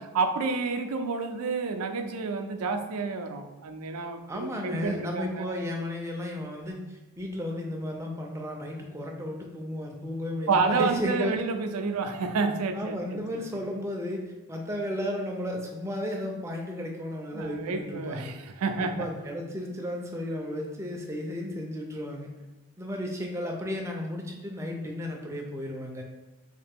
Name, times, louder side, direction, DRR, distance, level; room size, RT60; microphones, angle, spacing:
voice 1, 0.0-5.6 10.5-13.2 13.5-13.6 17.3-19.1, right 4 dB, 80° right, 6 dB, 0.4 m, -29 dB
voice 2, 4.3-11.3 12.7-18.3 18.8-22.3 22.8-26.0, left 1 dB, 10° right, 0 dB, 0.4 m, -34 dB
3.3 x 2.8 x 3.4 m, 1.1 s
head